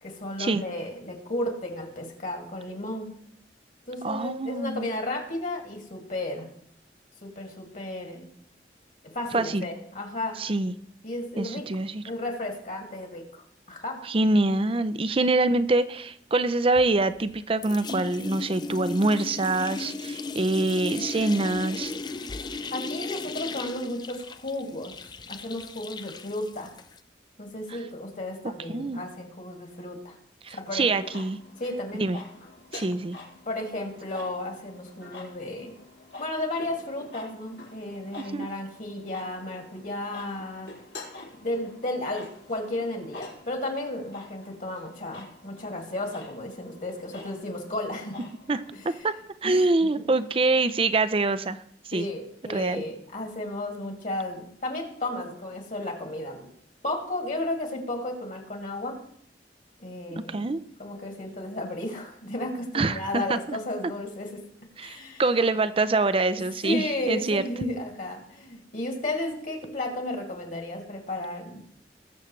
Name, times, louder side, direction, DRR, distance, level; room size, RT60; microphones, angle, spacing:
voice 1, 0.0-3.1 3.9-6.5 7.2-8.3 9.1-10.5 11.0-11.7 12.0-14.0 22.7-26.7 27.4-30.2 30.5-30.9 31.6-32.0 33.5-35.7 36.2-40.7 41.3-48.2 48.8-49.0 49.4-49.7 51.9-56.5 56.8-59.0 59.8-60.5 60.8-64.4 64.8-65.2 66.6-71.6, left 1 dB, 50° left, 2 dB, 2.4 m, -33 dB
voice 2, 4.0-4.9 9.3-9.7 10.4-10.7 11.4-12.0 14.1-21.9 28.7-29.0 30.4-31.4 32.0-32.2 32.7-33.2 38.2-38.5 48.5-48.6 49.0-49.1 49.4-51.6 51.9-52.1 52.5-52.8 60.3-60.6 62.7-63.4 64.8-67.4, right 2 dB, 30° right, 12 dB, 0.5 m, -25 dB
sound 1, 16.8-17.4 17.6-27.0, left 3 dB, 25° left, 0.5 m, -36 dB
sound 2, 30.7-49.0, left 3 dB, 80° left, 4.2 m, -47 dB
20.0 x 7.3 x 3.2 m, 0.67 s
head